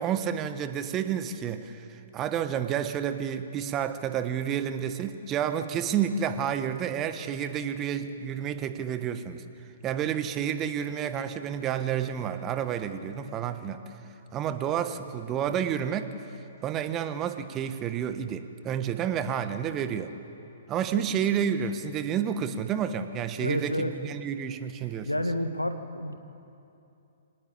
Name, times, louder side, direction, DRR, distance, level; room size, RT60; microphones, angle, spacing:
voice 1, 0.0-9.4 9.8-13.8 14.3-16.1 16.6-20.1 20.7-25.1, right 8 dB, 20° right, 10 dB, 1.3 m, -30 dB
voice 2, 23.4-23.9 25.0-26.1, equal, 85° left, 9 dB, 1.5 m, -29 dB
26.0 x 18.5 x 8.6 m, 2.8 s
figure-of-eight pair, 120°, 0 cm